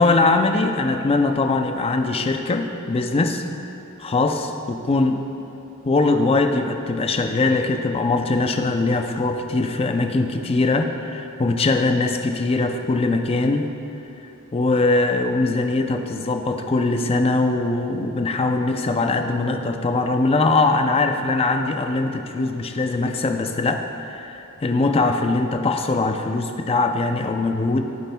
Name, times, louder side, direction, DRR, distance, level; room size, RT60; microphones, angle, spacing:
voice 1, 0.0-3.4 4.0-5.2 5.9-13.7 14.5-27.8, left 3 dB, 25° left, 5 dB, 0.4 m, -21 dB
11.5 x 8.5 x 2.2 m, 3.0 s
head